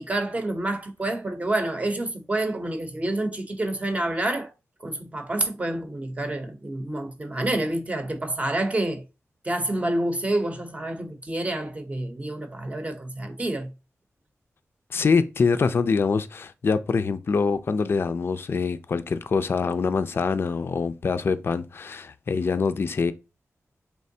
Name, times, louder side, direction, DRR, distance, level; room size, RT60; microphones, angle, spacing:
voice 1, 0.0-4.5 4.8-9.0 9.4-13.7, right 1 dB, 25° right, 0.7 m, -28 dB
voice 2, 14.9-23.1, left 5 dB, 45° left, 0.3 m, -24 dB
4.5 x 3.2 x 2.7 m
wide cardioid pair, 155°, 5 cm